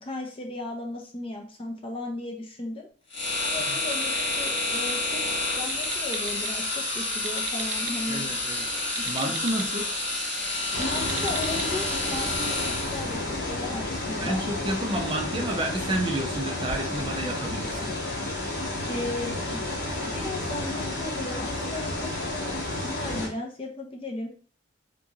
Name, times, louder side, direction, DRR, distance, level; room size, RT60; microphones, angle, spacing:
voice 1, 0.0-2.9 3.4-5.2 5.6-8.4 9.2-9.4 10.8-14.4 18.9-19.8 20.1-22.5 22.8-24.3, left 2 dB, 30° left, 1 dB, 0.5 m, -36 dB
sound 1, 3.1-13.2, left 2 dB, 80° left, 1.5 m, -29 dB
sound 2, 3.8-5.0 5.6-6.5 7.1-7.9 8.8-9.7 10.7-11.7, right 7 dB, 85° right, 0.5 m, -38 dB
voice 2, 8.1-8.7 9.1-9.9 14.2-17.9, right 1 dB, 25° right, 1 dB, 0.5 m, -30 dB
sound 3, 10.7-23.3, left 2 dB, 60° left, 1.4 m, -31 dB
3.6 x 2.9 x 2.5 m, 0.42 s
head